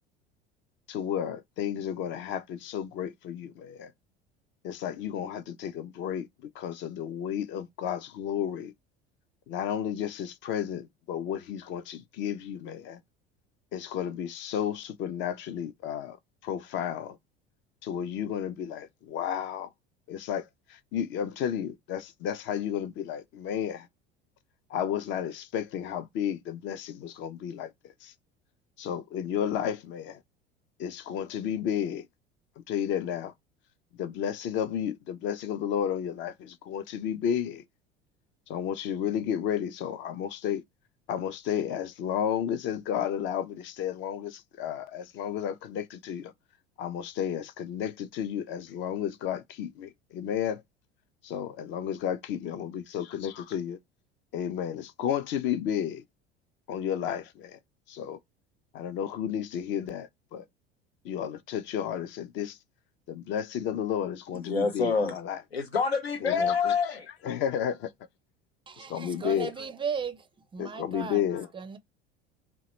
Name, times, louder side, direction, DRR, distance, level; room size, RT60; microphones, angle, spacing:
voice 1, 0.9-3.9 4.6-6.3 6.5-8.7 9.5-13.0 13.7-16.2 16.4-17.2 17.8-19.7 20.1-23.9 24.7-28.1 28.8-30.2 30.8-32.1 32.7-33.3 34.0-37.6 38.5-40.6 41.1-46.3 46.8-50.6 51.2-53.8 54.3-56.0 56.7-57.6 57.9-58.2 58.7-60.4 61.0-62.6 63.1-65.4 66.2-66.7 67.2-67.9 68.8-69.5 70.6-71.5, left 9 dB, 40° left, 0.5 m, -32 dB
voice 2, 64.3-65.1 65.5-67.1, left 5 dB, 85° left, 0.5 m, -27 dB
voice 3, 68.7-70.3 70.5-71.2 71.5-71.8, right 6 dB, 15° right, 0.4 m, -35 dB
2.8 x 2.1 x 2.9 m
figure-of-eight pair, 65°, 30 cm